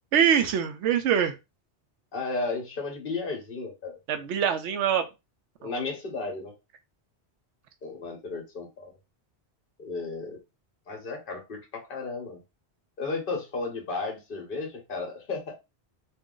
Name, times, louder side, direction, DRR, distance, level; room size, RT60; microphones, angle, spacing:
voice 1, 0.1-1.4 4.1-5.1 5.6-5.7, right 8 dB, 90° right, 8 dB, 0.9 m, -24 dB
voice 2, 2.1-4.0 5.6-6.5 7.8-8.9 9.8-10.4 10.9-12.4 13.0-15.5, left 3 dB, 50° left, 3 dB, 1.2 m, -34 dB
2.8 x 2.5 x 3.7 m, 0.25 s
omnidirectional pair, 1.1 m